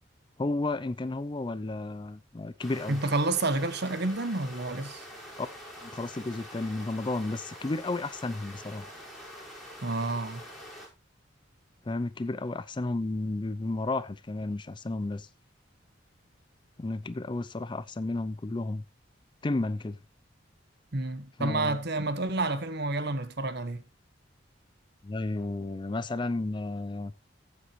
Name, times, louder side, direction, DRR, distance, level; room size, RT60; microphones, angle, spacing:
voice 1, 0.4-3.0 5.4-5.5 5.8-8.9 11.9-15.3 16.8-18.8 19.4-20.0 21.4-21.8 25.0-27.1, left 2 dB, 25° left, 0.4 m, -32 dB
sound 1, 2.6-10.9, equal, ahead, 5.8 m, -46 dB
voice 2, 2.9-5.0 9.8-10.4 20.9-23.8, right 2 dB, 55° right, 1.2 m, -29 dB
14.5 x 7.5 x 3.1 m
head